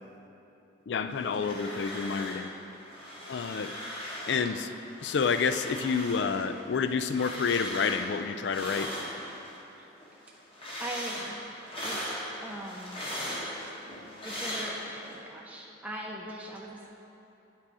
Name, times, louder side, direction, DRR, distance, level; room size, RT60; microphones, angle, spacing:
voice 1, 0.9-2.5 3.3-3.7 4.3-4.7 5.0-8.9, left 5 dB, 65° left, 10 dB, 0.4 m, -29 dB
sound 1, 1.1-2.5 2.7-4.5 4.9-9.6 10.0-15.1, equal, 30° left, 1.5 m, -39 dB
voice 2, 10.8-12.1 12.4-13.0 14.2-16.9, right 1 dB, 10° right, -2 dB, 0.5 m, -40 dB
9.0 x 7.5 x 4.8 m, 2.9 s
head